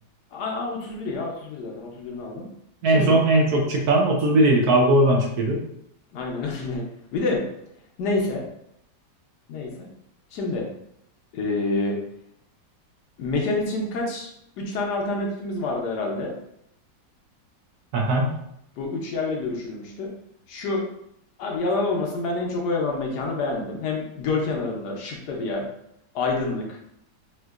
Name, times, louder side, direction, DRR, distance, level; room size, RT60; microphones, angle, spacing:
voice 1, 0.3-2.5 2.9-3.2 6.1-6.8 7.1-7.4 8.0-8.4 9.5-9.7 10.3-10.6 11.3-12.0 13.2-14.3 14.6-16.3 18.8-20.1 20.5-20.8 21.4-25.7 26.1-26.8, left 3 dB, 70° left, 0 dB, 1.2 m, -27 dB
voice 2, 2.8-5.6 17.9-18.3, right 1 dB, 70° right, 0 dB, 1.0 m, -19 dB
4.4 x 2.4 x 2.3 m, 0.74 s
omnidirectional pair, 1.9 m